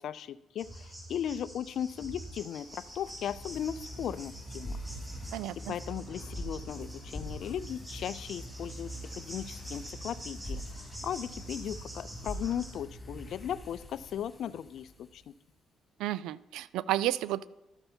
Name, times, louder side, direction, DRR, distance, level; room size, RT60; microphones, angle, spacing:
voice 1, 0.0-4.8 5.7-15.3, left 9 dB, 65° left, 16 dB, 0.4 m, -37 dB
sound 1, 0.6-12.8, right 1 dB, 30° right, 3.2 m, -47 dB
sound 2, 1.9-15.3, equal, 20° left, 2.6 m, -44 dB
voice 2, 5.3-5.7 16.0-17.5, right 14 dB, 85° right, 19 dB, 0.3 m, -32 dB
12.5 x 6.7 x 4.3 m, 0.90 s
supercardioid pair, 75°, 0 cm